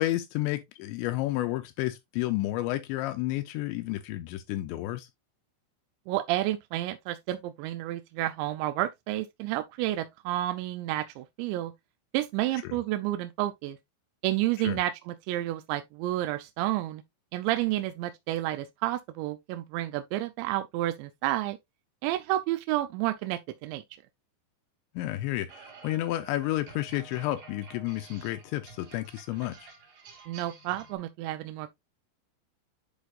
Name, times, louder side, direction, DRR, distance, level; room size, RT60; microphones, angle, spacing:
voice 1, 0.0-5.1 12.6-12.8 14.6-14.8 25.0-29.7, left 15 dB, 80° left, 2.7 m, -31 dB
voice 2, 6.1-11.7 12.1-13.8 14.2-17.0 17.3-21.6 22.0-23.8 30.3-31.7, right 15 dB, 80° right, 2.7 m, -30 dB
sound 1, 25.5-31.0, right 4 dB, 55° right, 3.4 m, -51 dB
10.0 x 4.5 x 2.4 m
omnidirectional pair, 5.4 m